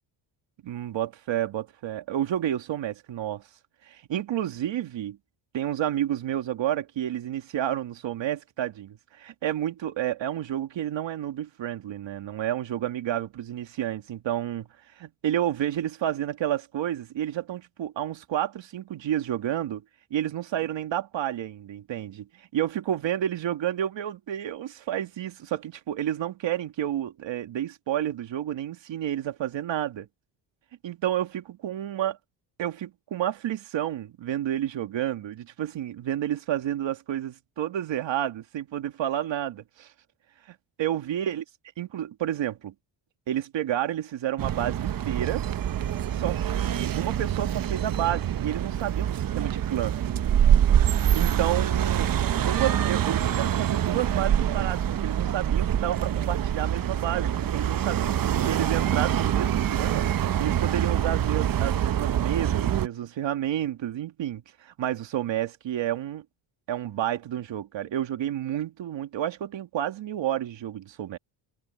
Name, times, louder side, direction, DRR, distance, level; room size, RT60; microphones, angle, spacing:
voice 1, 0.6-3.4 3.9-5.2 5.5-14.7 15.0-19.8 20.1-30.1 30.8-32.2 32.6-39.9 40.5-41.4 41.8-42.7 43.3-45.5 46.1-50.0 51.1-52.1 52.5-58.2 58.5-60.1 60.4-66.2 66.7-71.2, right 11 dB, 60° right, 2.1 m, -30 dB
sound 1, 44.4-62.9, right 10 dB, 45° right, 1.0 m, -25 dB
cardioid pair, 120°, 50 cm